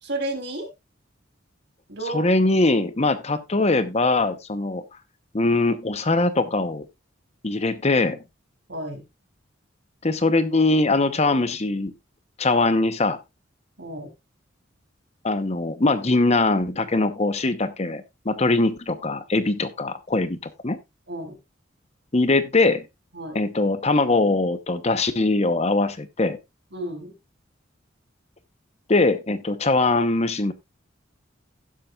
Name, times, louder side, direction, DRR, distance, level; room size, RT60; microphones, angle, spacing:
voice 1, 0.0-0.7 1.9-2.3 8.7-9.0 13.8-14.1 21.1-21.3 23.1-23.4 26.7-27.1, right 1 dB, 60° right, 3.2 m, -31 dB
voice 2, 2.1-4.8 5.3-6.9 7.4-8.2 10.0-11.9 12.4-13.2 15.2-20.8 22.1-22.9 23.3-26.4 28.9-30.5, left 2 dB, 35° left, 0.9 m, -22 dB
16.5 x 7.4 x 2.4 m
head